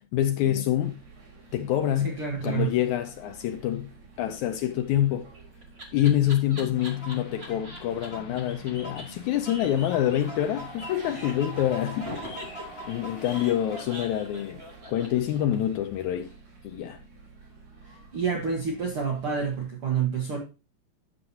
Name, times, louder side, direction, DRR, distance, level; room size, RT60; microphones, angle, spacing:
voice 1, 0.1-1.0 1.5-2.1 2.4-3.9 4.2-5.3 5.9-12.2 12.9-14.6 14.9-16.3 16.6-17.0, left 11 dB, 80° left, 1.7 m, -26 dB
sound 1, 0.8-19.7, right 4 dB, 85° right, 5.2 m, -49 dB
voice 2, 2.0-2.7 17.8-20.4, right 6 dB, 55° right, 1.7 m, -28 dB
Laughter, 5.0-8.1 8.4-8.5 8.7-8.8 9.0-9.1 9.3-10.6 10.9-11.5 12.0-15.8, equal, 35° right, 0.9 m, -43 dB
sound 2, 6.7-13.8, left 1 dB, 40° left, 3.9 m, -43 dB
9.8 x 7.5 x 2.8 m
omnidirectional pair, 3.9 m